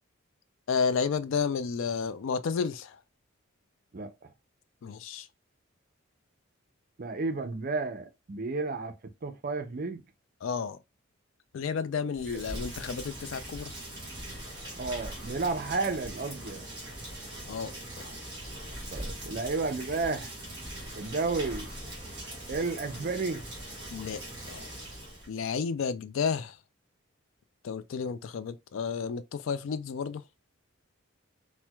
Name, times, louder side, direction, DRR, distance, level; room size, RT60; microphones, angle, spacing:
voice 1, 0.7-2.9 4.8-5.3 10.4-10.8 11.5-13.7 17.5-17.7 18.0-18.1 23.9-24.2 24.5-24.7 25.3-26.6 27.6-30.2, left 6 dB, 70° left, 0.3 m, -31 dB
voice 2, 3.9-4.3 7.0-8.9 9.2-10.0 12.3-12.4 14.8-16.7 18.9-20.3 20.9-21.7 22.5-23.4, right 3 dB, 45° right, 0.5 m, -32 dB
Rain, 12.1-25.3, right 1 dB, 25° right, 1.8 m, -41 dB
4.3 x 2.1 x 2.2 m
head